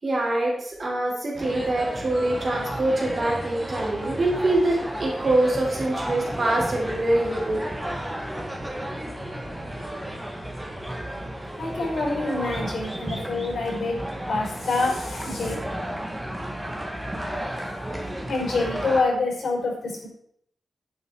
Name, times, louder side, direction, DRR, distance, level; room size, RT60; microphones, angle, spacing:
voice 1, 0.0-7.6, right 1 dB, 35° right, -2 dB, 3.8 m, -24 dB
sound 1, 1.3-19.0, right 1 dB, 10° right, 2.1 m, -33 dB
voice 2, 11.6-14.0 14.3-15.5 18.3-20.1, left 3 dB, 65° left, -1 dB, 5.5 m, -26 dB
10.5 x 9.9 x 4.7 m, 0.68 s
wide cardioid pair, 170°, 0 cm